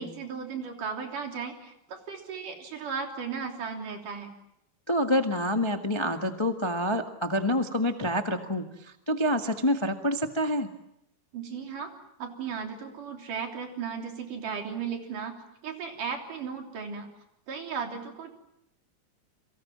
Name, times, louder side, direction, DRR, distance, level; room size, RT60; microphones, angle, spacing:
voice 1, 0.0-4.3 11.3-11.9 12.2-15.3 15.6-17.1 17.5-18.3, right 6 dB, 80° right, 3 dB, 4.9 m, -36 dB
voice 2, 4.9-10.7, equal, 20° left, 5 dB, 0.6 m, -27 dB
30.0 x 23.5 x 7.5 m, 0.81 s
omnidirectional pair, 3.6 m